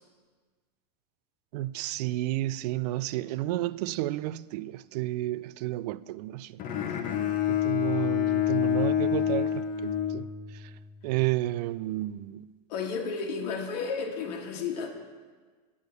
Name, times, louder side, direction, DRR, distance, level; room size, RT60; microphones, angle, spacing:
voice 1, 1.5-6.6 7.5-10.3 10.5-10.7 11.0-12.5, right 16 dB, 70° right, 0.4 m, -31 dB
Bowed string instrument, 6.6-10.8, left 10 dB, 40° left, 0.8 m, -27 dB
voice 2, 12.7-14.9, left 5 dB, 75° left, 1.4 m, -32 dB
8.4 x 6.4 x 6.7 m
supercardioid pair, 140°, 21 cm